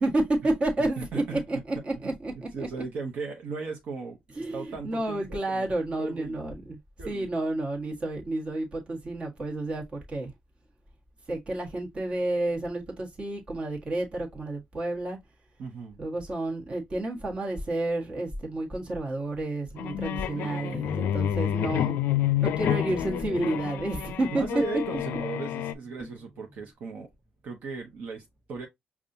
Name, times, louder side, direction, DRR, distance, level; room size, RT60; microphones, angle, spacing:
voice 1, 0.0-2.5 4.4-6.8 7.0-10.3 11.3-15.2 16.0-22.0 22.4-24.8, right 2 dB, 35° right, 1.4 m, -30 dB
voice 2, 0.8-1.4 2.0-4.2 4.5-5.7 6.0-6.4 7.0-7.4 15.6-16.0 20.4-21.1 24.3-27.1 27.4-28.7, right 4 dB, 60° right, 0.9 m, -37 dB
sound 1, 19.8-25.7, left 11 dB, 75° left, 0.4 m, -29 dB
sound 2, 23.5-26.7, left 1 dB, 10° left, 1.2 m, -54 dB
5.3 x 2.4 x 2.6 m
cardioid pair, 115°, 3 cm